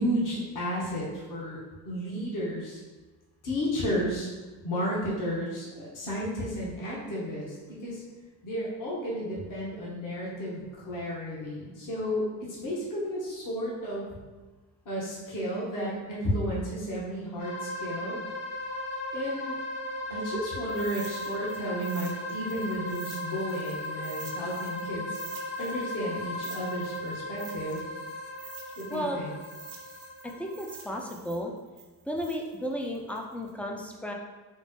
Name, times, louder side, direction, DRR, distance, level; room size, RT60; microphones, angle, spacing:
voice 1, 0.0-1.6 1.8-2.8 3.4-4.3 4.6-8.0 8.4-12.2 12.6-14.1 14.8-18.2 19.1-19.6 20.1-25.2 25.6-27.8 28.8-29.3, equal, 50° left, -6 dB, 1.3 m, -32 dB
sound 1, 17.4-31.0, left 1 dB, 75° left, 0.8 m, -37 dB
sound 2, 20.7-24.9 25.1-29.1 29.4-33.5, right 7 dB, 75° right, 0.8 m, -48 dB
voice 2, 28.9-29.2 30.2-31.5 32.1-34.1, equal, 5° left, 1 dB, 0.4 m, -34 dB
4.3 x 2.1 x 3.1 m, 1.3 s
supercardioid pair, 75°, 41 cm